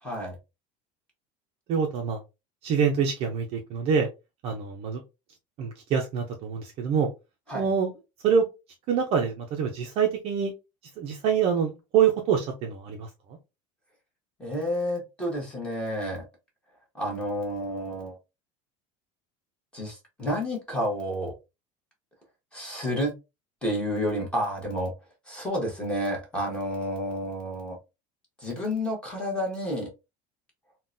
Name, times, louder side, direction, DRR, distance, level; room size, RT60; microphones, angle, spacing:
voice 1, 0.0-0.4 7.5-7.7 14.4-16.2 16.9-18.2 19.7-21.3 22.5-23.1 23.6-24.9 25.3-27.8 28.4-29.9, equal, 5° left, 1.0 m, -30 dB
voice 2, 1.7-2.2 2.6-4.1 4.4-5.0 5.6-7.1 7.5-7.9 8.2-8.4 8.9-10.5 11.0-13.1, right 7 dB, 35° right, 0.5 m, -25 dB
3.6 x 2.1 x 2.5 m
cardioid pair, 175°, 17 cm